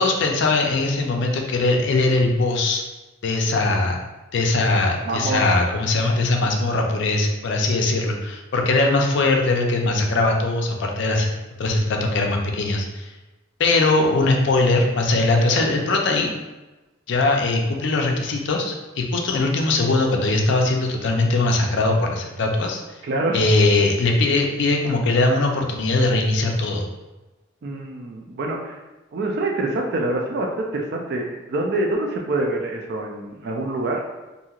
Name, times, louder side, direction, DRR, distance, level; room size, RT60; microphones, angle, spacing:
voice 1, 0.0-2.8 3.2-4.0 4.3-11.3 11.6-13.1 13.6-16.3 17.1-22.8 23.3-26.8, left 2 dB, 60° left, 1 dB, 0.4 m, -20 dB
voice 2, 5.0-5.6 23.0-23.5 27.6-28.7 29.1-34.0, right 2 dB, 55° right, 1 dB, 0.4 m, -25 dB
2.9 x 2.7 x 2.3 m, 1.1 s
head